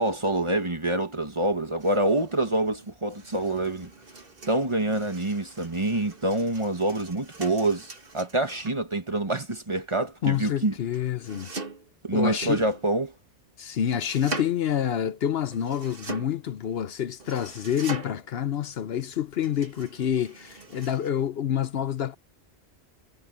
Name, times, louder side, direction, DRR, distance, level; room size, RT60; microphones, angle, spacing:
voice 1, 0.0-3.9 4.5-10.7 12.0-13.1, right 2 dB, 25° right, 1.8 m, -26 dB
sound 1, 1.8-8.8 10.9-11.9 12.4-13.3 13.9-14.6 15.5-16.5 17.2-18.3 19.4-21.1, right 3 dB, 60° right, 2.1 m, -42 dB
voice 2, 10.2-11.5 12.1-12.6 13.6-22.2, left 9 dB, 70° left, 0.9 m, -28 dB
omnidirectional pair, 1.1 m